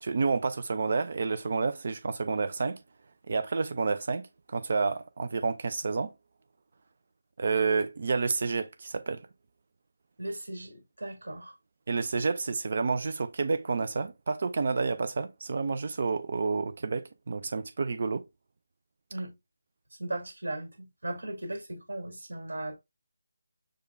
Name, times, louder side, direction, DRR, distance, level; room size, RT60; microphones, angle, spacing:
voice 1, 0.0-2.8 3.3-6.1 7.4-9.2 11.9-18.2, right 4 dB, 50° right, 0.4 m, -29 dB
voice 2, 10.2-11.5 19.1-19.3 20.0-22.8, right 1 dB, 75° right, 2.0 m, -37 dB
6.5 x 2.3 x 2.5 m
figure-of-eight pair, 160°, 0 cm